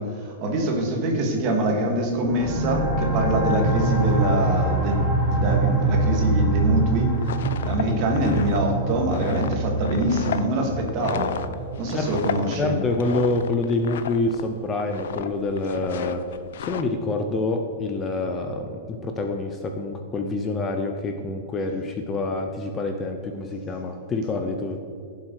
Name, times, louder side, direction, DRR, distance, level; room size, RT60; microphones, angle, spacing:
voice 1, 0.0-5.0 5.3-7.1 7.6-11.4 11.8-12.8, right 1 dB, 35° right, 1 dB, 2.3 m, -24 dB
sound 1, 2.2-13.6, right 2 dB, 10° right, 1.6 m, -25 dB
sound 2, 7.0-14.5 14.7-15.3 15.6-16.8, left 8 dB, 75° left, 0.7 m, -33 dB
voice 2, 12.6-16.2 16.5-24.8, left 3 dB, 15° left, 4 dB, 0.7 m, -27 dB
15.5 x 7.6 x 4.9 m, 2.5 s
supercardioid pair, 165°, 0 cm